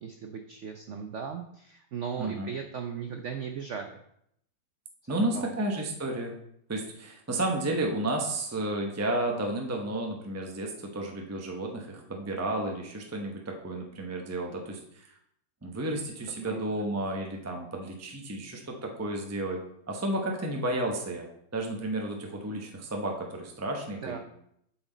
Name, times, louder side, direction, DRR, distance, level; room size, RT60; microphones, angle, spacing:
voice 1, 0.0-4.0 5.1-5.4 16.4-16.6 24.0-24.2, right 7 dB, 75° right, 5 dB, 0.6 m, -37 dB
voice 2, 2.2-2.5 5.1-6.4 6.7-15.1 15.6-19.6 19.9-21.3 21.5-24.2, right 1 dB, 25° right, 1 dB, 0.3 m, -32 dB
8.0 x 6.2 x 3.9 m, 0.73 s
omnidirectional pair, 2.0 m